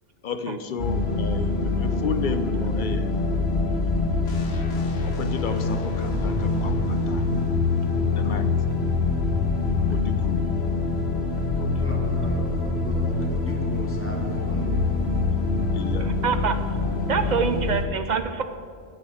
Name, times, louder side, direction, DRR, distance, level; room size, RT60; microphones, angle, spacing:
voice 1, 0.2-3.1 5.0-7.2 8.1-8.5 9.9-10.4 11.6-12.0 15.7-16.1, left 4 dB, 55° left, 10 dB, 0.8 m, -33 dB
sound 1, 0.8-17.8, left 3 dB, 80° left, 1.2 m, -25 dB
sound 2, 3.7-3.8 5.0-5.2 5.5-5.7 6.0-6.5 7.7-7.9 8.2-8.3 8.7-9.2 10.4-10.6 10.9-11.0 11.4-11.8 13.0-13.2 13.5-13.7, equal, 75° right, 1.5 m, -36 dB
voice 2, 11.4-15.1, left 1 dB, 10° left, -2 dB, 1.8 m, -37 dB
voice 3, 16.0-16.6 17.1-18.4, right 6 dB, 50° right, 9 dB, 0.7 m, -25 dB
8.2 x 6.7 x 7.7 m, 2.2 s
omnidirectional pair, 1.1 m